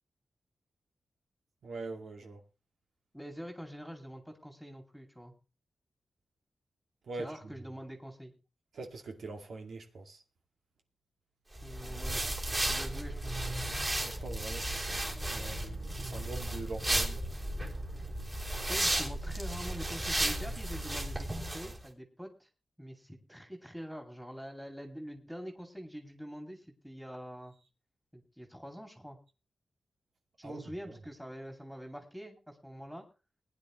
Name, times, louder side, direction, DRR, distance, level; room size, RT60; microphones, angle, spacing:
voice 1, 1.6-2.4 7.1-7.5 8.7-10.2 14.0-15.0 15.3-17.2 30.4-30.7, right 3 dB, 80° right, 2.3 m, -43 dB
voice 2, 3.1-5.3 7.2-8.3 11.6-12.2 12.5-13.6 18.7-22.5 22.8-27.5 28.1-29.2 30.4-33.0, equal, ahead, 2.6 m, -45 dB
sound 1, 11.6-21.8, right 1 dB, 25° right, 3.4 m, -34 dB
20.5 x 10.0 x 3.2 m
wide cardioid pair, 105°, 0 cm